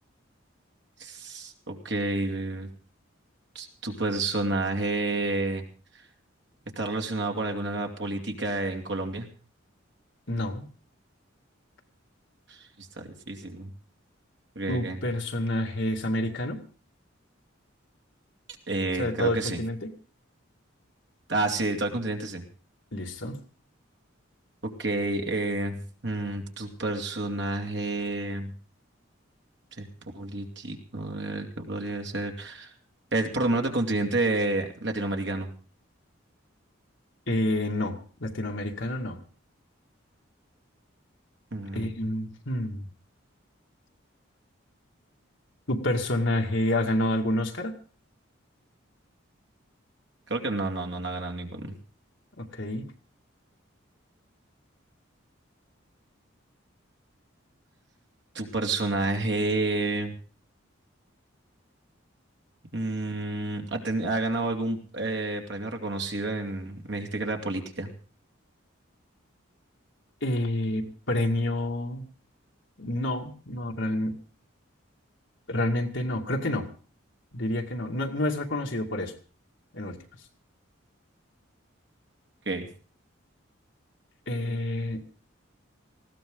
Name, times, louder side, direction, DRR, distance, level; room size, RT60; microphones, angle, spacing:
voice 1, 1.0-2.7 3.5-5.6 6.8-9.3 12.5-13.7 14.6-15.0 18.7-19.6 21.3-22.4 24.6-28.5 29.8-29.9 30.1-32.7 33.1-35.5 41.5-41.9 50.3-51.7 58.3-60.1 62.7-67.9 82.5-82.7, right 2 dB, 55° right, 3 dB, 2.6 m, -29 dB
voice 2, 10.3-10.7 14.7-16.6 19.0-19.9 22.9-23.4 37.3-39.2 41.7-42.9 45.7-47.8 52.4-52.8 70.2-72.0 72.8-74.2 75.5-76.7 77.3-79.1 79.7-80.0 84.3-85.0, left 1 dB, 65° left, 2 dB, 2.3 m, -28 dB
19.5 x 16.0 x 3.9 m, 0.39 s
head